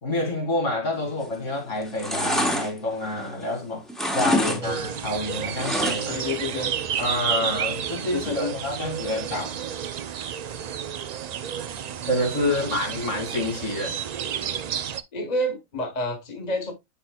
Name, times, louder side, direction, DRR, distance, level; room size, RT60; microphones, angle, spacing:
voice 1, 0.0-6.2 7.0-9.6 12.0-14.0, left 1 dB, 85° left, 3.0 m, -28 dB
sound 1, 1.1-1.5 1.8-3.6 3.9-4.6 4.9-6.3 6.6-6.7, equal, ahead, 1.0 m, -26 dB
voice 2, 4.4-4.8 6.1-6.7 8.1-8.6 12.3-12.8 15.1-16.7, left 2 dB, 35° left, 1.5 m, -29 dB
sound 2, 4.6-15.0, right 8 dB, 90° right, 0.3 m, -31 dB
10.5 x 4.2 x 2.3 m
omnidirectional pair, 1.2 m